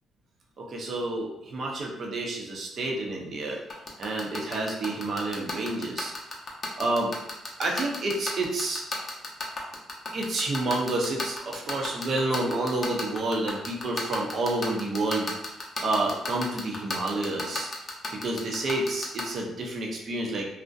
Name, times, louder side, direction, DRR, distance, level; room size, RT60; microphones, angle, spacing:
voice 1, 0.6-3.6 4.0-6.1 6.8-7.1 7.6-8.8 10.1-15.3 15.8-17.7 18.1-20.5, right 2 dB, 55° right, -1 dB, 0.6 m, -29 dB
sound 1, 3.7-19.2, left 3 dB, 40° left, 0.6 m, -32 dB
2.6 x 2.0 x 2.3 m, 0.86 s
cardioid pair, 90°, 0 cm